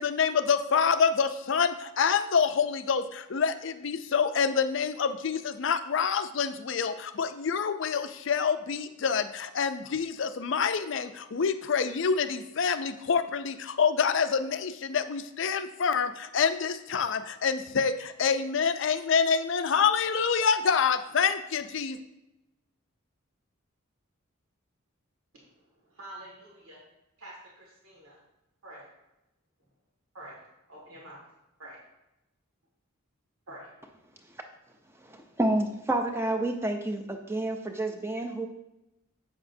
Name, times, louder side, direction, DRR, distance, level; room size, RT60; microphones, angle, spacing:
voice 1, 0.0-22.0, left 6 dB, 60° left, 10 dB, 0.4 m, -27 dB
voice 2, 25.3-26.8 27.2-28.2 28.6-28.9 30.1-31.2 31.6-31.8 33.5-33.7, right 1 dB, 85° right, -3 dB, 1.9 m, -47 dB
voice 3, 35.1-38.5, right 1 dB, 10° right, 4 dB, 0.5 m, -29 dB
8.4 x 7.1 x 2.7 m, 0.95 s
head